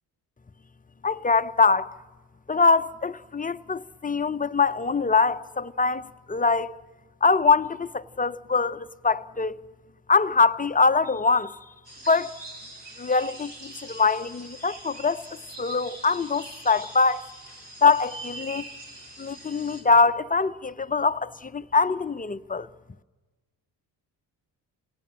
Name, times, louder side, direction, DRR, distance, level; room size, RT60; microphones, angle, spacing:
voice 1, 1.0-1.9 2.5-6.8 7.2-9.6 10.1-11.6 12.1-12.4 13.0-15.2 15.6-17.3 17.8-18.7 19.2-22.7, left 4 dB, 15° left, 0.7 m, -23 dB
sound 1, 11.8-19.8, right 2 dB, 60° right, 6.8 m, -43 dB
28.5 x 17.5 x 7.5 m
hypercardioid pair, 45°, 48 cm